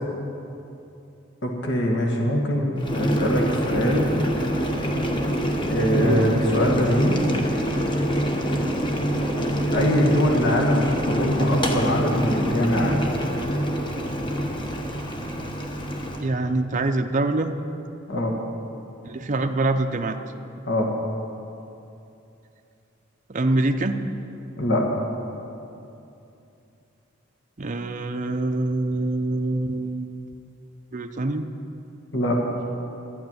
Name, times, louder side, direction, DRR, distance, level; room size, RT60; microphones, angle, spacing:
voice 1, 1.4-4.1 5.7-7.2 9.7-13.2 18.1-18.4 20.7-20.9 24.6-24.8 32.1-32.4, equal, 60° left, -1 dB, 1.8 m, -23 dB
Boiling, 2.8-16.3, equal, 25° left, 1.2 m, -25 dB
voice 2, 5.9-6.3 16.2-17.5 19.0-20.2 23.3-24.0 27.6-30.2 30.9-31.4, right 2 dB, 35° right, 5 dB, 0.6 m, -25 dB
12.0 x 9.4 x 9.1 m, 2.8 s
head